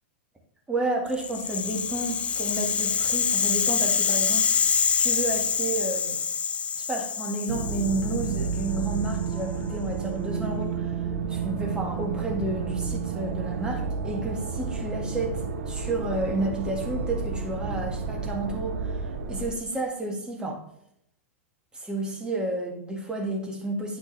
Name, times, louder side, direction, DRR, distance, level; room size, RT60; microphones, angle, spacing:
voice 1, 0.7-4.5 5.0-6.2 6.8-10.9 11.3-19.0 19.3-20.6 21.7-24.0, right 2 dB, 10° right, 0 dB, 1.8 m, -31 dB
Rattle (instrument), 1.1-9.3, left 7 dB, 15° left, 0.4 m, -26 dB
sound 1, 7.5-19.5, right 5 dB, 60° right, 0.9 m, -31 dB
10.0 x 6.2 x 3.3 m, 0.75 s
figure-of-eight pair, 100°, 7 cm